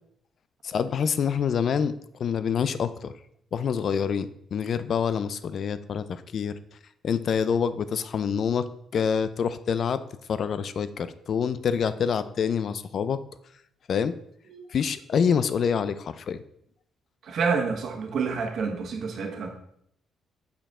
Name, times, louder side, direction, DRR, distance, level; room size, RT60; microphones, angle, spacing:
voice 1, 0.6-3.1 3.5-6.6 7.0-10.0 10.3-13.2 13.9-14.2 14.7-16.4, left 7 dB, 55° left, 14 dB, 0.4 m, -26 dB
voice 2, 17.2-19.6, right 5 dB, 65° right, 3 dB, 1.3 m, -28 dB
6.8 x 5.2 x 3.6 m, 0.70 s
cardioid pair, 90°, 0 cm